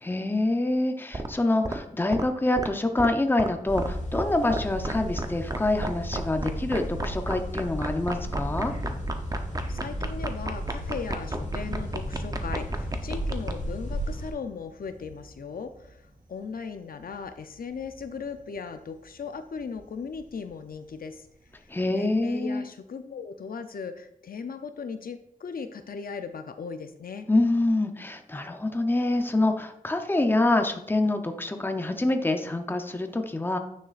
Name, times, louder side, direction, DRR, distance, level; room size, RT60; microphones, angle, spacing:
voice 1, 0.0-8.7 21.7-22.6 27.3-33.6, left 2 dB, 15° left, 6 dB, 0.7 m, -26 dB
sound 1, 1.1-1.3 1.7-1.8 2.1-2.2 2.6-2.7 3.0-3.1 3.4-3.5 3.8-3.9 4.1-4.2 4.5-4.9 5.2-5.3 5.5-13.5, right 2 dB, 25° right, 0.7 m, -31 dB
sound 2, 3.7-14.3, equal, 50° left, 2.4 m, -34 dB
Thunder, 7.6-22.4, right 1 dB, 65° right, 1.4 m, -47 dB
voice 2, 9.7-16.0 16.3-21.2 21.9-27.3, left 5 dB, 75° left, 8 dB, 0.6 m, -37 dB
9.4 x 6.5 x 2.5 m, 0.76 s
wide cardioid pair, 100°, 15 cm